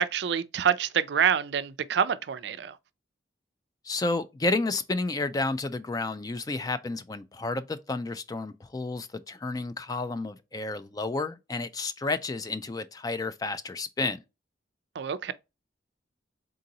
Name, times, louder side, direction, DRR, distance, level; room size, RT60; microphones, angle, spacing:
voice 1, 0.0-2.8 15.0-15.3, right 8 dB, 65° right, 0.4 m, -26 dB
voice 2, 3.8-14.2, left 3 dB, 20° left, 0.3 m, -31 dB
3.9 x 3.8 x 2.7 m
head